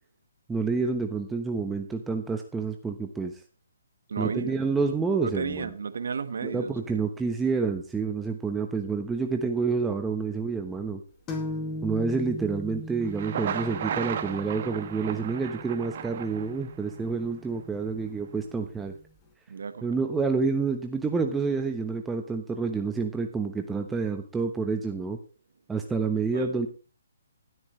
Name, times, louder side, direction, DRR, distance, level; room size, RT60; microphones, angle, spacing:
voice 1, 0.5-3.4 4.2-5.7 6.4-11.0 11.8-18.9 19.8-25.2 25.7-26.7, right 4 dB, 10° right, 1.1 m, -28 dB
voice 2, 4.1-4.6 5.2-7.0 19.5-20.0 26.3-26.5, right 5 dB, 70° right, 1.4 m, -33 dB
sound 1, 11.3-18.8, equal, 20° left, 2.9 m, -39 dB
Thunder, 13.0-17.0, right 8 dB, 50° right, 1.6 m, -35 dB
16.5 x 12.5 x 3.2 m
hypercardioid pair, 140°, 0 cm